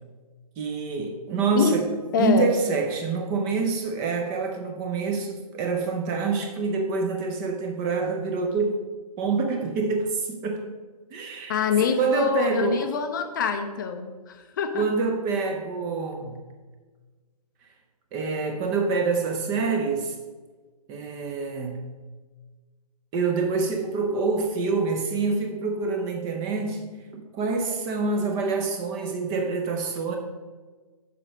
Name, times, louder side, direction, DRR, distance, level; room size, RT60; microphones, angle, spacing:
voice 1, 0.6-1.9 2.2-8.8 9.2-10.7 11.1-11.6 12.0-12.8 14.7-16.4 18.1-20.1 20.9-21.9 23.1-30.2, right 4 dB, 15° right, 3 dB, 0.6 m, -26 dB
voice 2, 2.1-2.5 11.5-14.8, left 6 dB, 30° left, 6 dB, 0.6 m, -25 dB
6.8 x 4.9 x 6.1 m, 1.4 s
figure-of-eight pair, 140°, 20 cm